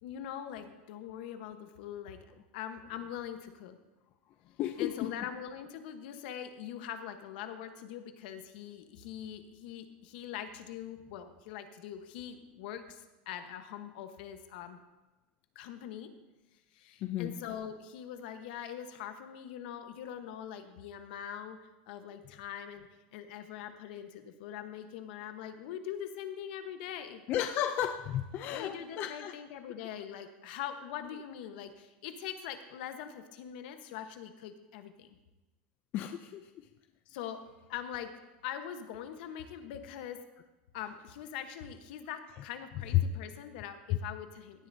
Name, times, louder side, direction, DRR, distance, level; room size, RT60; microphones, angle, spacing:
voice 1, 0.0-2.2 2.5-3.8 4.8-14.8 15.5-16.1 16.7-21.6 21.9-27.2 28.5-35.1 37.1-37.4 37.7-38.1 38.4-40.2 40.7-44.7, left 9 dB, 65° left, 8 dB, 1.1 m, -42 dB
voice 2, 4.6-5.1 17.0-17.4 27.3-29.3 35.9-36.5 42.9-43.0, left 12 dB, 35° left, 7 dB, 0.5 m, -32 dB
17.0 x 11.5 x 2.7 m, 1.1 s
supercardioid pair, 165°, 6 cm